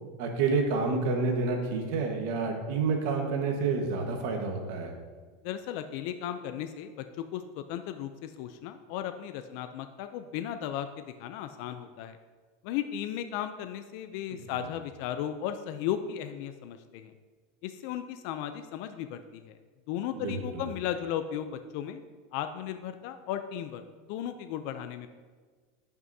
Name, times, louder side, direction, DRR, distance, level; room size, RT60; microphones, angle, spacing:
voice 1, 0.2-4.9 14.3-14.4 20.1-20.7, right 4 dB, 60° right, 3 dB, 1.3 m, -29 dB
voice 2, 5.4-12.2 12.6-17.1 17.6-19.6 19.9-22.0 22.3-23.8 24.1-25.1, left 10 dB, 55° left, 9 dB, 0.4 m, -35 dB
11.0 x 6.0 x 2.7 m, 1.4 s
supercardioid pair, 155°, 0 cm